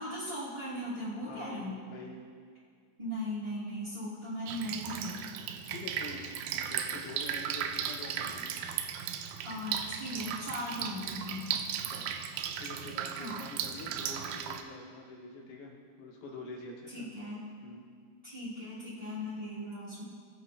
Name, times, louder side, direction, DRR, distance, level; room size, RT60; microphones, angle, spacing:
voice 1, 0.0-1.8 3.0-5.2 9.4-11.5 13.1-13.4 16.9-17.5 18.2-20.0, equal, 10° right, -13 dB, 2.0 m, -38 dB
voice 2, 1.3-2.3 5.7-8.6 11.8-12.1 12.6-15.7 16.0-17.1 17.6-17.8, left 2 dB, 90° left, -1 dB, 3.5 m, -46 dB
Drip, 4.5-14.6, right 8 dB, 85° right, 2.5 m, -36 dB
20.5 x 8.7 x 2.8 m, 2.2 s
omnidirectional pair, 4.3 m